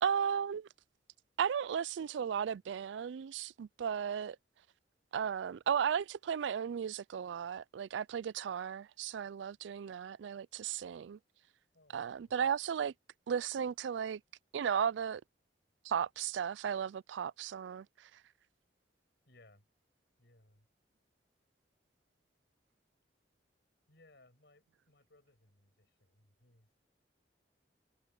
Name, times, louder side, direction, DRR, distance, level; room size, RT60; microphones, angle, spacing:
voice 1, 0.0-0.7 1.4-4.4 5.1-11.2 11.9-12.9 13.3-14.2 14.5-15.2 15.8-18.1, right 8 dB, 80° right, 0.3 m, -35 dB
voice 2, 11.7-12.4 19.3-19.7 20.2-20.7 23.9-26.7, left 2 dB, 65° left, 6.7 m, -65 dB
head